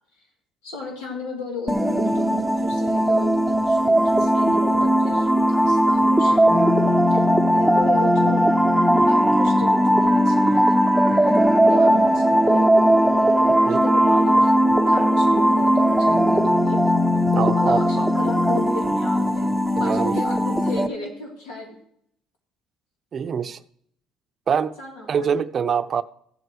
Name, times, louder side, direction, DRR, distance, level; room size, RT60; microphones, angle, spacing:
voice 1, 0.6-6.8 7.1-7.2 7.5-8.6 9.1-10.7 11.7-12.7 13.1-14.6 14.9-16.8 17.5-21.7 24.8-25.4, left 3 dB, 90° left, 3.6 m, -35 dB
sound 1, 1.7-20.9, equal, ahead, 0.9 m, -18 dB
voice 2, 17.3-18.1 19.8-20.2 23.1-23.6 24.5-24.8 25.1-26.0, right 7 dB, 45° right, 0.6 m, -24 dB
14.5 x 7.9 x 3.3 m
supercardioid pair, 80°, 0 cm